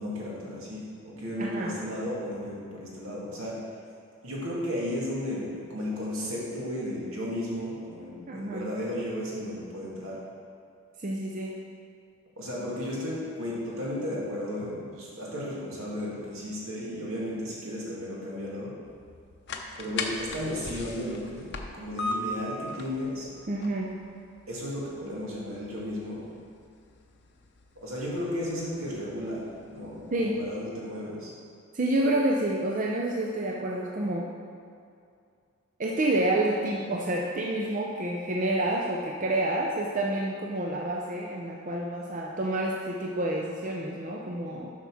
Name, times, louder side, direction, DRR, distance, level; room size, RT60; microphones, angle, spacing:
voice 1, 0.0-3.6 4.2-10.2 12.4-18.7 19.8-23.3 24.5-26.2 27.8-31.3, left 1 dB, 75° right, -5 dB, 2.3 m, -34 dB
voice 2, 1.4-1.7 8.3-8.7 11.0-11.6 23.5-23.9 30.1-30.4 31.7-34.3 35.8-44.7, right 1 dB, 35° right, -2 dB, 0.6 m, -28 dB
sound 1, 18.8-30.6, left 2 dB, 50° left, 0.7 m, -40 dB
7.4 x 5.7 x 6.2 m, 2.4 s
head